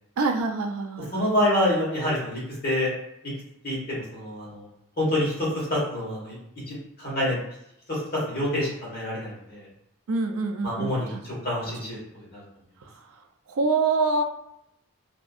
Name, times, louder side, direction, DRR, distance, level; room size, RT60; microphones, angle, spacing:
voice 1, 0.2-1.3 10.1-11.2 13.5-14.2, right 3 dB, 80° right, 4 dB, 0.4 m, -25 dB
voice 2, 1.1-2.9 3.6-4.7 5.0-6.3 6.7-7.4 7.9-9.7 10.6-12.0 12.3-12.4, left 1 dB, 45° left, -7 dB, 1.3 m, -27 dB
2.7 x 2.5 x 2.4 m, 0.82 s
head